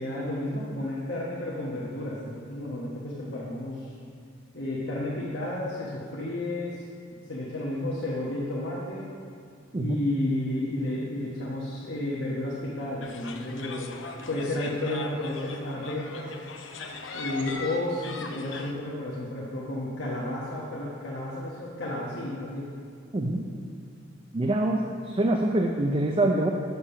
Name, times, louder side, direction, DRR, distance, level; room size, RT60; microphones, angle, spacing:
voice 1, 0.0-4.0 4.5-6.8 7.1-9.1 9.8-13.9 14.3-16.3 17.1-22.7, left 1 dB, 60° left, -6 dB, 1.2 m, -32 dB
sound 1, 13.0-18.7, left 4 dB, 80° left, 0.7 m, -40 dB
sound 2, 16.8-19.1, left 1 dB, 65° right, 0.8 m, -45 dB
voice 2, 23.1-23.4 24.3-26.5, right 1 dB, 30° right, 2 dB, 0.5 m, -25 dB
7.4 x 6.8 x 5.6 m, 2.3 s
head